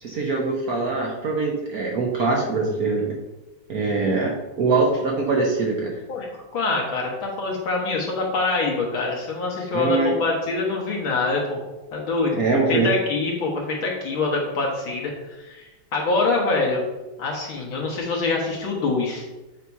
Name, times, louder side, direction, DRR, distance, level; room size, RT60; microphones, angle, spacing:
voice 1, 0.0-3.1 3.7-6.0 9.7-10.2 12.3-12.9, right 3 dB, 55° right, -1 dB, 1.1 m, -23 dB
voice 2, 6.5-11.6 11.9-12.4 12.7-15.1 15.4-15.6 15.9-16.9 17.2-19.2, left 3 dB, 75° left, -3 dB, 2.2 m, -24 dB
8.3 x 2.8 x 4.7 m, 1.1 s
omnidirectional pair, 2.3 m